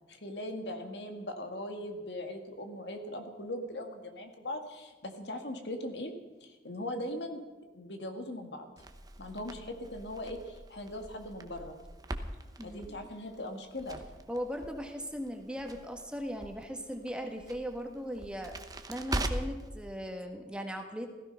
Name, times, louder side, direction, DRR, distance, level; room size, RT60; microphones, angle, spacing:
voice 1, 0.1-6.1 6.4-7.4 7.7-8.7 9.2-11.7 12.6-14.0, left 1 dB, 75° left, 5 dB, 2.0 m, -40 dB
Crackle, 8.8-19.7, right 1 dB, 20° right, 1.0 m, -41 dB
voice 2, 12.6-13.0 14.3-18.5 18.9-21.1, equal, 5° right, 3 dB, 1.5 m, -38 dB
16.5 x 15.0 x 5.8 m, 1.2 s
head